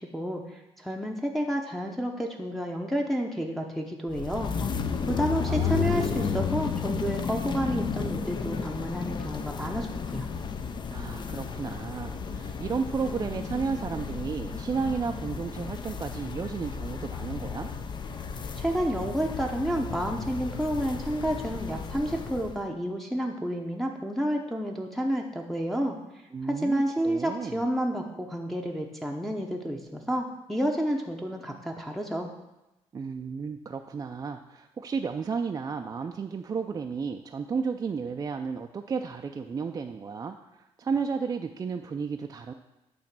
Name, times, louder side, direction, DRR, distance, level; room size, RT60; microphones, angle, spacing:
voice 1, 0.1-4.5 5.0-10.3 18.6-26.0 26.4-32.3, equal, ahead, 0 dB, 0.7 m, -30 dB
sound 1, 4.1-22.6, left 6 dB, 45° left, 0.5 m, -33 dB
voice 2, 5.0-6.0 10.9-17.7 26.3-27.6 32.9-42.5, right 5 dB, 30° right, 4 dB, 0.4 m, -33 dB
8.6 x 3.1 x 5.9 m, 0.95 s
cardioid pair, 105°, 11 cm